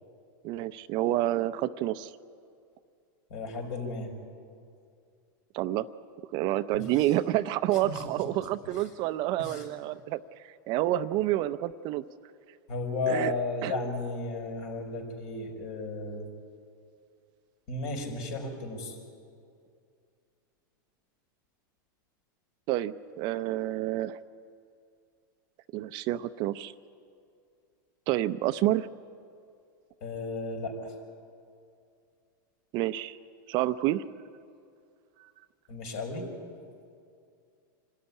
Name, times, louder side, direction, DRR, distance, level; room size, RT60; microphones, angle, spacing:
voice 1, 0.4-2.1 5.5-5.9 6.3-12.0 13.1-13.3 13.6-13.7 22.7-24.2 25.7-26.7 28.1-28.9 32.7-33.2 33.5-34.0, right 14 dB, 45° right, 12 dB, 0.6 m, -29 dB
voice 2, 3.3-4.1 6.7-7.1 7.7-8.0 8.4-8.5 8.7-8.8 9.4-9.7 12.7-16.3 17.7-19.0 30.0-30.9 35.7-36.3, left 3 dB, 55° left, 3 dB, 5.6 m, -34 dB
26.0 x 13.0 x 9.9 m, 2.4 s
supercardioid pair, 130°, 11 cm